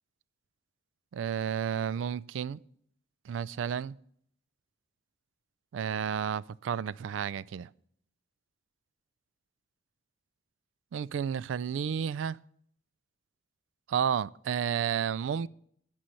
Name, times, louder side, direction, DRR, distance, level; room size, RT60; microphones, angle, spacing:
voice 1, 1.1-2.6 3.3-3.9 5.7-7.7 10.9-12.4 13.9-15.5, right 8 dB, 75° right, 0.3 m, -31 dB
11.5 x 5.5 x 7.7 m
head